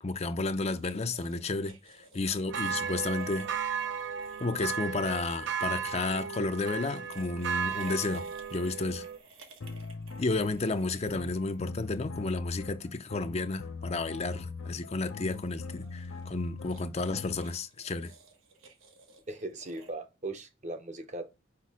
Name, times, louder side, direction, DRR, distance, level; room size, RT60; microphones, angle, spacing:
voice 1, 0.0-3.5 4.4-9.1 10.2-18.1, left 3 dB, 30° left, 0.5 m, -32 dB
sound 1, 0.5-5.7 6.7-11.9 15.1-19.9, right 3 dB, 85° right, 1.5 m, -55 dB
sound 2, 2.5-9.2, right 6 dB, 60° right, 0.6 m, -35 dB
sound 3, 9.6-17.5, left 4 dB, 70° left, 0.6 m, -41 dB
voice 2, 19.3-21.3, right 2 dB, 35° right, 0.8 m, -38 dB
5.9 x 5.0 x 4.8 m
head